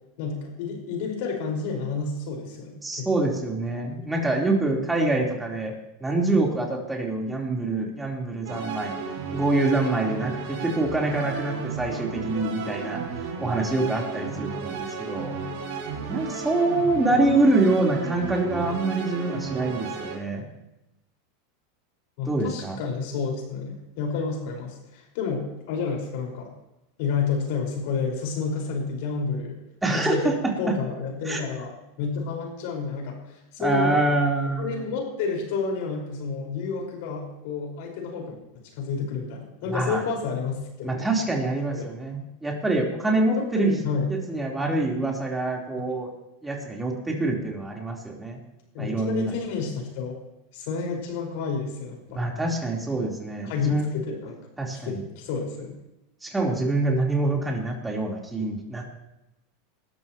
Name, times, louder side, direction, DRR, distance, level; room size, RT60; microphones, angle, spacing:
voice 1, 0.2-3.1 4.0-4.1 22.2-26.5 27.0-29.6 29.9-34.2 34.6-38.4 38.8-41.1 41.7-41.9 43.4-44.1 45.7-45.8 48.7-50.1 50.5-52.2 53.4-54.4 54.7-55.7, left 5 dB, 65° left, 0 dB, 5.4 m, -30 dB
voice 2, 2.8-5.7 6.0-9.0 9.3-13.0 13.4-15.4 16.1-20.5 22.3-22.8 29.8-30.4 30.7-30.8 31.3-31.4 33.6-34.8 39.7-40.0 40.8-43.7 44.1-46.1 46.4-48.4 48.8-49.3 52.1-53.9 54.6-55.0 56.2-58.9, right 2 dB, 10° right, -1 dB, 4.0 m, -25 dB
sound 1, 8.4-20.2, right 5 dB, 65° right, 5.5 m, -33 dB
20.5 x 13.5 x 3.1 m, 0.92 s
hypercardioid pair, 105°, 0 cm